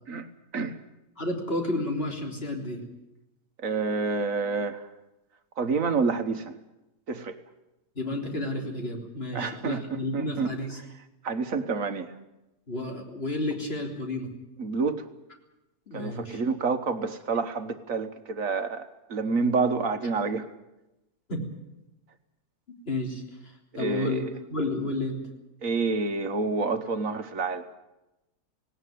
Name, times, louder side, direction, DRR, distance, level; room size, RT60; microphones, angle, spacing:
voice 1, 1.2-2.8 8.0-10.8 12.7-14.3 15.9-16.4 21.3-21.4 22.9-25.2, left 1 dB, 35° left, 2 dB, 3.8 m, -31 dB
voice 2, 3.6-4.9 5.6-6.5 7.1-7.4 9.3-10.6 11.2-12.1 14.6-15.1 15.9-20.5 23.7-24.3 25.6-27.7, right 4 dB, 60° right, 9 dB, 1.6 m, -28 dB
18.5 x 18.5 x 9.3 m, 0.94 s
omnidirectional pair, 1.7 m